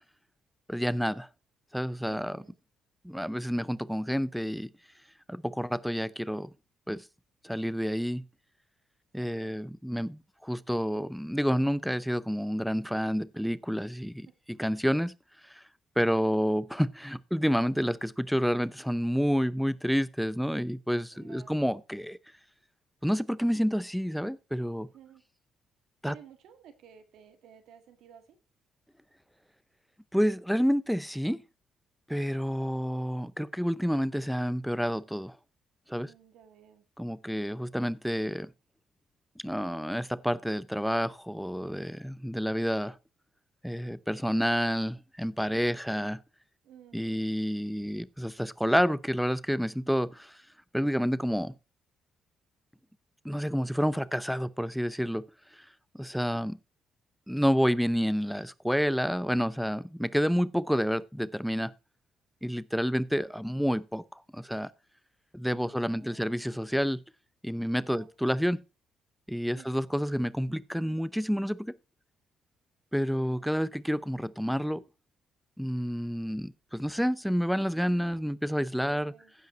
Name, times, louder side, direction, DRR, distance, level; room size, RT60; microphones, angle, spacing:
voice 1, 0.7-1.3 1.7-2.4 3.0-4.7 5.3-6.5 6.9-7.0 7.4-8.2 9.1-15.1 15.5-15.6 16.0-22.2 23.0-24.9 26.0-26.2 30.1-31.4 32.1-35.4 35.9-36.1 37.0-38.5 39.4-43.0 43.6-46.2 46.9-50.4 50.7-51.6 53.2-55.2 55.9-56.6 57.3-61.7 62.4-64.7 65.3-67.0 67.4-68.6 69.3-71.7 72.9-74.8 75.6-79.1, equal, ahead, 0.6 m, -29 dB
voice 2, 2.0-2.6 9.2-9.6 16.1-16.5 21.1-21.8 24.8-25.2 26.0-28.4 35.9-36.9 46.6-47.3 65.5-66.4 67.9-68.1 69.6-70.0 73.1-73.6 78.9-79.3, right 9 dB, 80° right, 1.7 m, -55 dB
15.5 x 5.3 x 4.3 m
cardioid pair, 90°, 0 cm